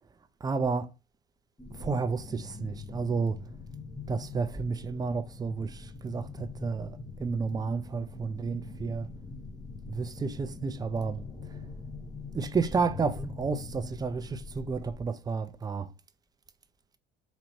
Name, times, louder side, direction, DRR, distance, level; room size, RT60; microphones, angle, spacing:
voice 1, 0.4-0.9 1.7-3.4 4.1-9.1 9.9-11.2 12.3-15.9, right 5 dB, 15° right, 0.4 m, -31 dB
sound 1, 1.6-14.9, left 4 dB, 10° left, 1.2 m, -43 dB
4.1 x 2.8 x 2.7 m
hypercardioid pair, 65°, 29 cm